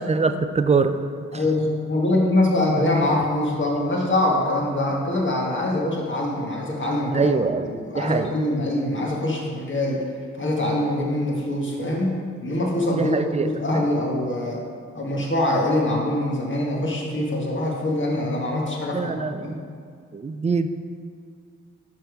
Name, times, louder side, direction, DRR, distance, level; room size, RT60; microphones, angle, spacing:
voice 1, 0.1-1.0 7.1-7.7 7.9-8.3 12.9-13.5 18.9-19.6 20.1-20.7, right 4 dB, 20° right, 10 dB, 0.4 m, -23 dB
voice 2, 1.3-7.3 7.6-10.0 10.3-14.6 14.9-19.6, left 1 dB, 35° left, -2 dB, 1.6 m, -24 dB
5.8 x 5.1 x 4.7 m, 2.2 s
cardioid pair, 55°, 32 cm